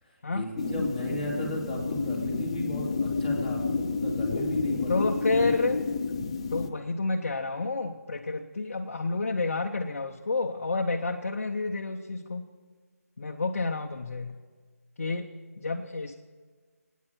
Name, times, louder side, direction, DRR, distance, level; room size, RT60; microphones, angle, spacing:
voice 1, 0.0-5.1, equal, 10° right, -5 dB, 2.2 m, -36 dB
sound 1, 0.6-6.7, left 4 dB, 20° left, 0.5 m, -30 dB
voice 2, 4.9-5.8 6.5-12.5 13.2-14.4 15.0-16.1, left 3 dB, 50° left, 2 dB, 0.8 m, -30 dB
26.5 x 9.2 x 4.5 m, 1.5 s
figure-of-eight pair, 170°, 9 cm